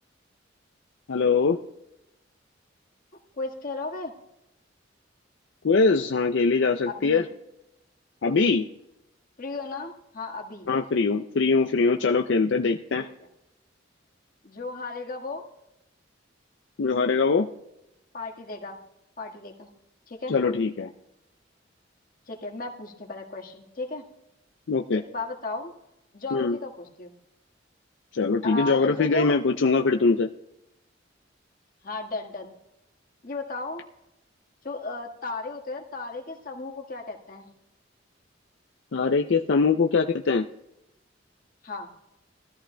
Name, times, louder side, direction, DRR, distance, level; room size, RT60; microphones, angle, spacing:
voice 1, 1.1-1.6 5.6-7.2 8.2-8.7 10.7-13.1 16.8-17.5 20.3-20.9 24.7-25.0 26.3-26.6 28.1-30.3 38.9-40.4, left 4 dB, 70° left, 4 dB, 0.5 m, -22 dB
voice 2, 3.3-4.1 6.9-7.3 9.4-10.7 13.0-13.1 14.4-15.4 18.1-18.8 19.2-19.7 20.1-20.3 22.3-24.0 24.9-25.7 26.1-27.1 28.4-29.3 31.8-32.5 33.2-33.8 34.6-37.5 41.6-41.9, left 3 dB, 45° left, 0 dB, 1.6 m, -35 dB
21.0 x 13.5 x 2.2 m, 0.88 s
head